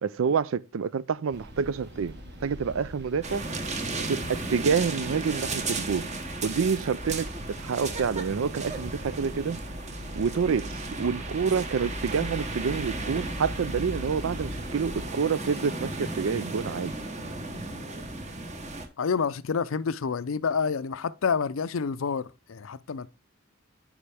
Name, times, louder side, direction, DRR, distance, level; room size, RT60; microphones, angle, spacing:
voice 1, 0.0-3.4 4.1-6.1 6.4-7.3 7.6-9.6 10.2-16.9, right 6 dB, 75° right, 0.4 m, -28 dB
sound 1, 1.3-15.1, equal, 55° right, 2.2 m, -41 dB
sound 2, 3.2-18.9, right 2 dB, 35° right, 1.2 m, -35 dB
voice 2, 19.0-23.1, left 5 dB, 75° left, 0.5 m, -28 dB
9.8 x 5.1 x 3.4 m
head